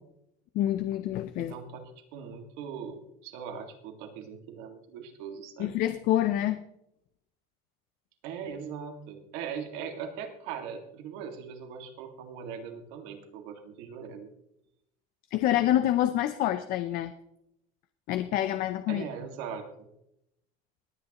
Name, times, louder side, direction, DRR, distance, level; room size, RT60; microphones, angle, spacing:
voice 1, 0.5-1.6 5.6-6.6 15.3-17.1 18.1-19.1, left 12 dB, 50° left, 10 dB, 0.6 m, -27 dB
voice 2, 1.4-5.7 8.2-14.3 18.9-19.9, right 7 dB, 85° right, 5 dB, 2.0 m, -40 dB
19.5 x 8.9 x 3.0 m, 0.80 s
cardioid pair, 160°, 18 cm